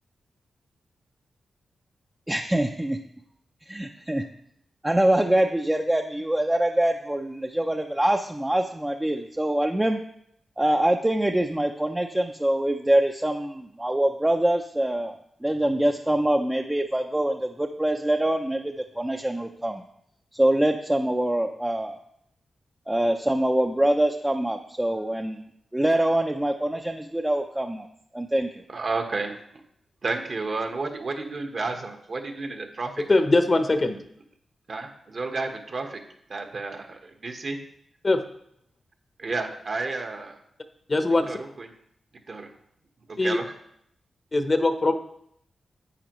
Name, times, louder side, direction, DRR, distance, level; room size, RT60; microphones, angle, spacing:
voice 1, 2.3-3.0 3.7-4.2 4.8-10.0 10.6-19.8 20.3-22.0 22.9-25.4 25.7-27.9 28.1-28.6, right 1 dB, 10° right, 3 dB, 0.6 m, -24 dB
voice 2, 28.7-29.4 30.0-32.9 34.7-36.0 36.3-37.6 39.2-40.4 41.3-41.7 42.3-42.5 43.1-43.4, right 3 dB, 55° right, 4 dB, 1.3 m, -31 dB
voice 3, 33.1-34.0 38.0-38.2 40.9-41.4 43.2-43.4 44.3-44.9, left 2 dB, 35° left, 8 dB, 0.9 m, -21 dB
9.8 x 8.3 x 3.1 m, 0.72 s
cardioid pair, 75°, 0 cm